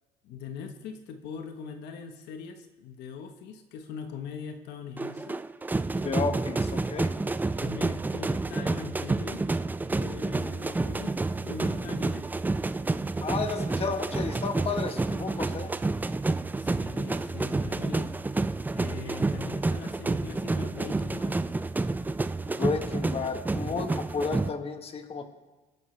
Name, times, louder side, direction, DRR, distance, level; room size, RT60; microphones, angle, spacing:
voice 1, 0.2-5.4 7.6-9.5 9.9-12.3 16.6-18.2 18.7-21.4, left 6 dB, 85° left, 6 dB, 1.2 m, -41 dB
sound 1, 5.0-24.5, right 3 dB, 10° right, 0.4 m, -29 dB
voice 2, 6.0-7.1 13.2-15.7 19.0-19.2 22.5-25.3, left 5 dB, 35° left, 6 dB, 1.3 m, -32 dB
24.0 x 8.9 x 3.3 m, 1.2 s
cardioid pair, 110°, 17 cm